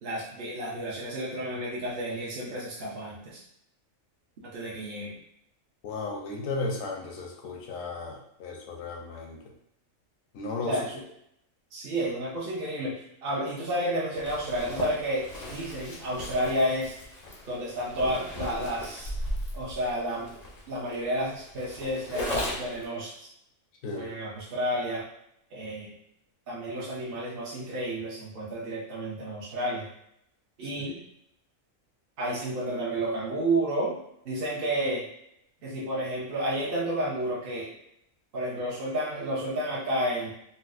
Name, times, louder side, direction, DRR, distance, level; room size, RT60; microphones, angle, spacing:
voice 1, 0.0-3.4 4.4-5.2 10.6-11.0 11.7-16.9 17.5-19.1 19.5-20.3 20.7-23.3 23.9-25.0 25.5-25.9 26.5-29.9 30.6-31.0 32.2-34.0 34.2-35.1 35.6-37.7 38.3-40.3, right 1 dB, 50° right, -6 dB, 0.8 m, -31 dB
voice 2, 5.8-9.4 10.3-10.8 23.8-24.1 30.8-30.9, left 3 dB, 75° left, 0 dB, 1.0 m, -35 dB
Zipper (clothing), 14.2-22.8, left 1 dB, 50° left, 0.5 m, -37 dB
4.0 x 2.1 x 2.4 m, 0.76 s
omnidirectional pair, 1.4 m